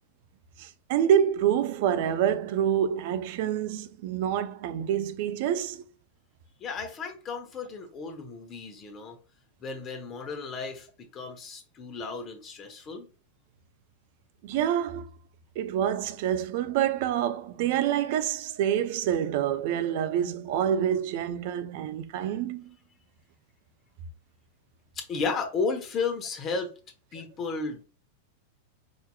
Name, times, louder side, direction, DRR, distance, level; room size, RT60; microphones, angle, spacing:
voice 1, 0.6-5.8 14.4-15.1 15.6-22.7, right 9 dB, 55° right, 0.5 m, -27 dB
voice 2, 6.6-9.2 9.6-10.9 11.1-13.1 24.9-26.7 27.1-27.8, left 4 dB, 35° left, 1.0 m, -33 dB
5.0 x 2.8 x 2.2 m
hypercardioid pair, 95°, 0 cm